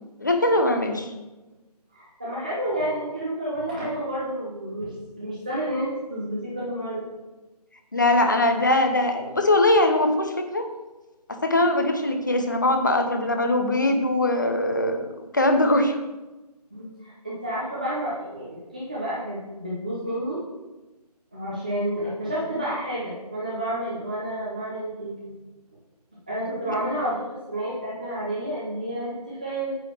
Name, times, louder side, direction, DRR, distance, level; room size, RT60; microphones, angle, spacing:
voice 1, 0.2-1.1 7.9-10.7 11.3-16.0, left 1 dB, 30° left, 5 dB, 0.8 m, -21 dB
voice 2, 1.9-7.0 16.7-20.4 21.3-25.1 26.3-27.2 27.5-29.7, right 1 dB, 10° right, -7 dB, 0.7 m, -30 dB
9.1 x 4.0 x 6.7 m, 1.1 s
figure-of-eight pair, 175°, 21 cm